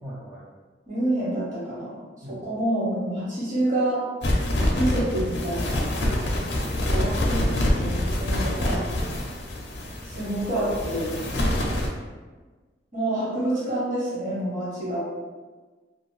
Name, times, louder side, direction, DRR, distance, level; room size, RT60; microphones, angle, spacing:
voice 1, 0.0-0.5 2.2-2.5 6.0-6.4 11.3-11.6, right 1 dB, 10° right, -9 dB, 0.4 m, -39 dB
voice 2, 0.9-1.9 2.3-4.0 4.7-6.0 6.9-8.8 10.1-11.2 12.9-15.0, right 1 dB, 45° right, -9 dB, 1.3 m, -27 dB
sound 1, 4.2-11.9, left 1 dB, 65° left, 0.5 m, -26 dB
2.7 x 2.4 x 3.1 m, 1.4 s
head